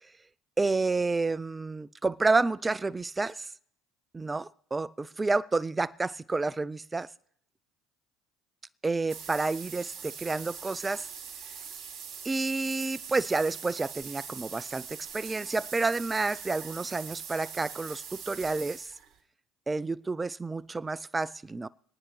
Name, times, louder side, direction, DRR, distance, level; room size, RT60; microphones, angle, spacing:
voice 1, 0.6-3.5 4.1-7.1 8.8-11.1 12.2-18.9 19.7-21.7, right 3 dB, 20° right, 0.4 m, -30 dB
sound 1, 9.1-19.2, right 7 dB, 45° right, 2.6 m, -42 dB
25.0 x 9.8 x 3.2 m
hypercardioid pair, 80°, 0 cm